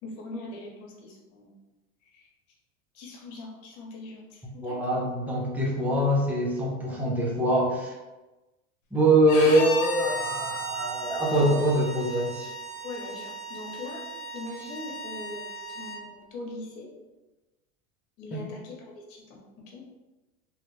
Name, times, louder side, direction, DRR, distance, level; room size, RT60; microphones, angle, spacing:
voice 1, 0.0-1.6 2.0-2.3 2.9-5.0 12.8-14.0 14.3-16.9 18.2-19.4 19.7-19.8, left 2 dB, 70° left, -1 dB, 1.2 m, -41 dB
voice 2, 4.4-7.9 8.9-12.5 18.3-18.5, right 1 dB, 5° right, -4 dB, 0.7 m, -24 dB
Bowed string instrument, 9.3-16.0, equal, 90° left, 0.7 m, -35 dB
3.0 x 2.5 x 3.2 m, 1.1 s
supercardioid pair, 105°, 38 cm